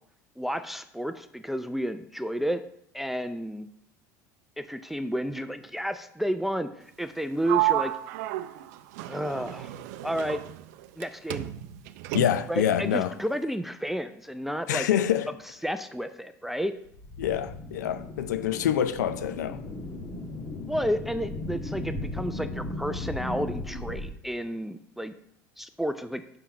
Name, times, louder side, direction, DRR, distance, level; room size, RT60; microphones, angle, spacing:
voice 1, 0.4-2.6 2.9-3.7 4.6-7.9 9.1-9.7 10.0-10.4 11.0-11.5 12.5-14.9 15.6-16.7 20.7-25.1 25.6-26.2, equal, ahead, 0.4 m, -31 dB
Sliding door, 7.4-11.0 11.3-12.6, right 15 dB, 70° right, 0.4 m, -31 dB
voice 2, 12.1-13.1 14.7-15.3 17.2-19.6, left 10 dB, 85° left, 0.5 m, -26 dB
sound 1, 16.9-24.1, left 2 dB, 40° left, 1.3 m, -36 dB
5.7 x 5.7 x 5.1 m
hypercardioid pair, 85°, 9 cm